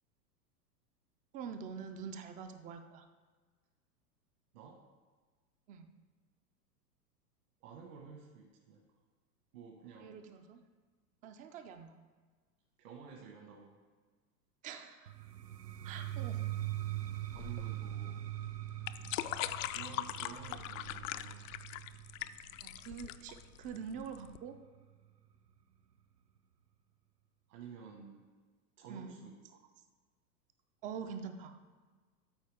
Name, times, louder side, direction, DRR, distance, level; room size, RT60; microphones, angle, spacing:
voice 1, 1.3-3.1 5.7-6.0 10.0-10.6 11.2-12.0 14.6-15.1 15.8-16.4 22.6-24.6 28.9-29.2 30.8-31.5, right 6 dB, 20° right, 7 dB, 0.3 m, -45 dB
voice 2, 7.6-8.8 9.5-10.2 12.8-13.8 17.3-18.2 19.7-21.5 27.5-28.3 28.8-29.4, right 6 dB, 65° right, 0 dB, 1.7 m, -51 dB
sound 1, 15.1-24.8, right 13 dB, 90° right, 0.7 m, -42 dB
sound 2, 17.3-24.4, left 14 dB, 55° left, 0.5 m, -41 dB
13.0 x 4.6 x 3.5 m, 1.4 s
hypercardioid pair, 100°, 47 cm